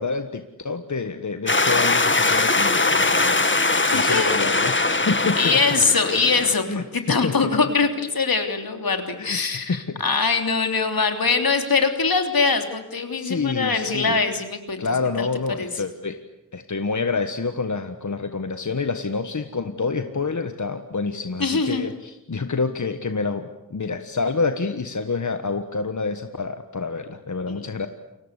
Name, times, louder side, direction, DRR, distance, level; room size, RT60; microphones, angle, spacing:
voice 1, 0.0-3.5 3.9-5.6 6.7-7.6 9.2-10.3 13.2-14.2 14.8-16.2 16.5-27.9, left 4 dB, 55° left, 8 dB, 1.5 m, -28 dB
sound 1, 1.5-6.5, left 3 dB, 35° left, 1.9 m, -21 dB
voice 2, 3.9-4.4 5.4-14.8 15.2-15.3 15.6-15.8 21.4-21.9 27.5-27.6, left 4 dB, 85° left, 5 dB, 3.3 m, -22 dB
29.5 x 23.5 x 8.3 m, 0.89 s
wide cardioid pair, 60°, 34 cm